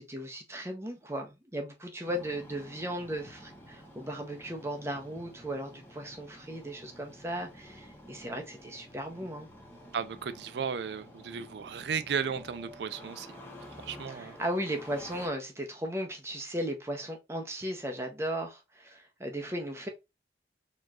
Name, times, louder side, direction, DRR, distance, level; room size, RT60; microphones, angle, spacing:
voice 1, 0.0-9.5 14.1-19.9, right 1 dB, 15° right, 0.7 m, -36 dB
Engine starting, 2.1-15.3, equal, 10° left, 0.9 m, -50 dB
voice 2, 9.9-13.3 13.8-14.4, right 6 dB, 75° right, 0.4 m, -34 dB
4.4 x 3.0 x 2.4 m
head